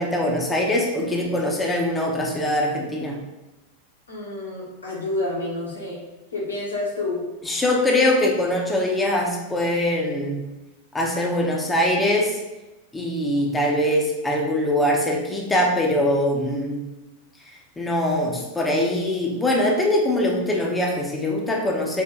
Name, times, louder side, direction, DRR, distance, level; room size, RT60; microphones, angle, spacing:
voice 1, 0.0-3.2 7.4-10.4 10.9-12.4 12.9-16.9 17.8-22.0, left 1 dB, 10° left, -1 dB, 0.6 m, -22 dB
voice 2, 4.1-6.0 6.3-7.3, left 2 dB, 75° left, -5 dB, 1.2 m, -29 dB
4.8 x 2.4 x 2.3 m, 1.0 s
figure-of-eight pair, 90°, 0 cm